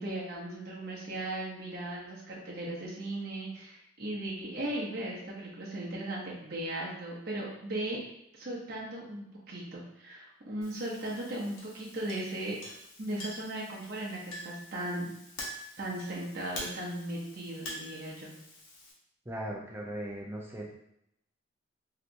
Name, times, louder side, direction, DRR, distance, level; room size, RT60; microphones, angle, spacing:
voice 1, 0.0-8.0 8.3-12.7 13.0-15.1 15.8-18.3, right 1 dB, 50° right, -5 dB, 0.8 m, -37 dB
Chink clink, 10.6-18.9, left 1 dB, 85° left, 0.8 m, -46 dB
voice 2, 19.2-20.7, right 1 dB, 10° right, -1 dB, 0.5 m, -38 dB
3.2 x 2.8 x 2.6 m, 0.77 s
head